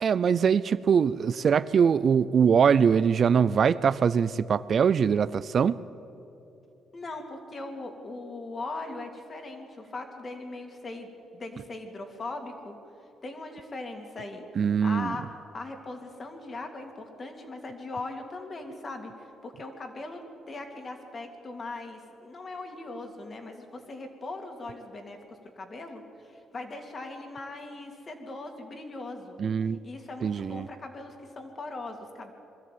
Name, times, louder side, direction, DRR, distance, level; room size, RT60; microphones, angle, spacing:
voice 1, 0.0-5.8 14.6-15.2 29.4-29.8 30.2-30.7, right 7 dB, 50° right, 16 dB, 0.4 m, -22 dB
voice 2, 6.9-11.1 11.3-12.8 13.2-15.3 15.5-32.3, left 2 dB, 40° left, 4 dB, 2.8 m, -40 dB
22.0 x 13.5 x 9.3 m, 2.8 s
cardioid pair, 90°, 0 cm